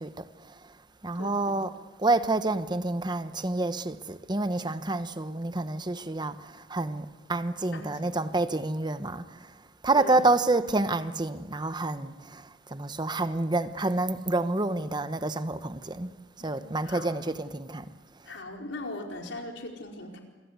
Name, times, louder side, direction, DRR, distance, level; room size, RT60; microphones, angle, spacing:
voice 1, 0.0-16.1 16.4-17.9 18.2-18.4, right 2 dB, 25° right, 1.0 m, -29 dB
voice 2, 1.2-1.5 7.7-8.1 10.0-10.2 16.4-16.6 16.8-17.2 18.2-20.2, left 2 dB, 70° left, 4.7 m, -39 dB
28.0 x 23.0 x 8.3 m
head